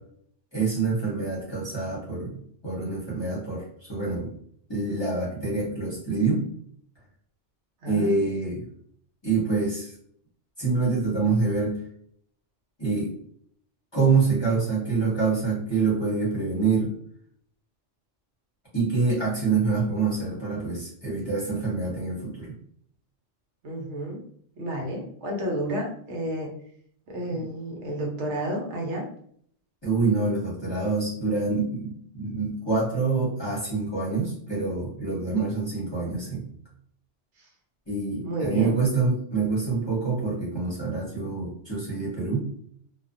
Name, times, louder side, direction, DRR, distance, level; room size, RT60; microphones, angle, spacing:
voice 1, 0.5-4.3 4.7-6.4 7.9-8.6 9.2-9.9 10.6-11.8 12.8-13.1 13.9-16.9 18.7-22.5 27.3-27.4 29.8-36.5 37.9-42.5, right 4 dB, 25° left, -7 dB, 0.8 m, -26 dB
voice 2, 7.8-8.2 23.6-24.2 24.6-26.5 27.1-29.1 35.3-35.4 38.2-38.7, right 1 dB, 70° right, -1 dB, 1.0 m, -31 dB
2.5 x 2.2 x 2.4 m, 0.63 s
omnidirectional pair, 1.3 m